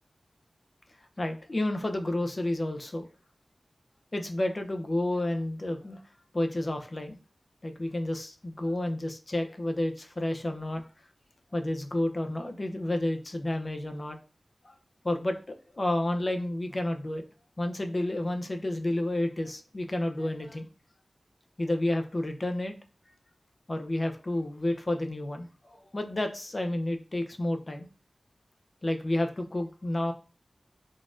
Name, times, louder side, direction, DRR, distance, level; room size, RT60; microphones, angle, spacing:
voice 1, 1.2-3.0 4.1-6.0 6.3-7.2 7.6-10.8 11.5-14.2 14.6-14.8 15.0-17.2 17.6-20.7 21.6-22.7 23.7-27.9 28.8-30.1, left 1 dB, 35° left, 5 dB, 0.5 m, -30 dB
3.9 x 2.5 x 2.4 m, 0.35 s
wide cardioid pair, 85°, 0 cm